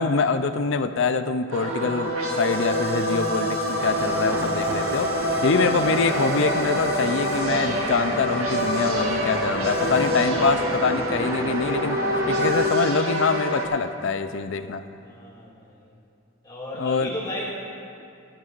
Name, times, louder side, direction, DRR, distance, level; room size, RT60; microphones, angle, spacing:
voice 1, 0.0-12.0 12.3-14.8 16.8-17.1, left 4 dB, 65° left, 10 dB, 0.5 m, -24 dB
sound 1, 1.5-13.7, equal, 85° right, 1.7 m, -26 dB
sound 2, 3.8-12.7, right 1 dB, 10° right, 0.4 m, -33 dB
voice 2, 15.0-15.9 16.4-17.5, left 1 dB, 20° left, -6 dB, 2.2 m, -34 dB
16.5 x 13.0 x 2.5 m, 2.6 s
head